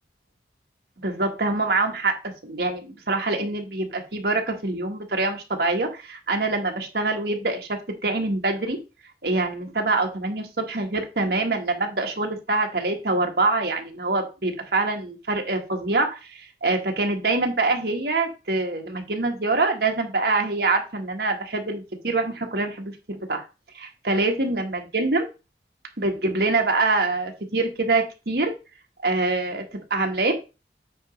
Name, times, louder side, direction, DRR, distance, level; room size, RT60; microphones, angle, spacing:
voice 1, 1.0-2.1 2.4-8.8 9.2-23.4 23.7-25.3 26.0-28.5 29.0-29.6 29.9-30.4, right 3 dB, 65° right, 3 dB, 1.4 m, -25 dB
8.6 x 3.0 x 5.1 m, 0.29 s
head